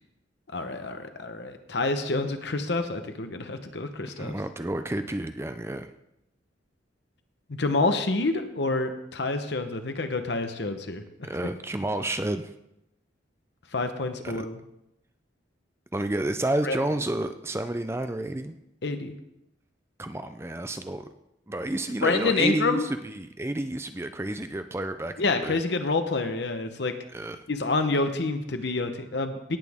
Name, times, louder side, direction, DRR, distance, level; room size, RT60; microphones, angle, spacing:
voice 1, 0.5-4.3 7.6-11.3 13.7-14.6 16.6-16.8 18.8-19.1 22.0-22.8 25.2-26.9 27.5-29.6, left 3 dB, 60° left, 8 dB, 0.9 m, -28 dB
voice 2, 4.1-5.9 11.3-12.5 14.2-14.5 15.9-18.5 20.0-21.1 21.5-25.6 27.1-27.4, right 1 dB, 15° right, 9 dB, 0.4 m, -30 dB
17.5 x 8.3 x 3.6 m, 0.86 s
head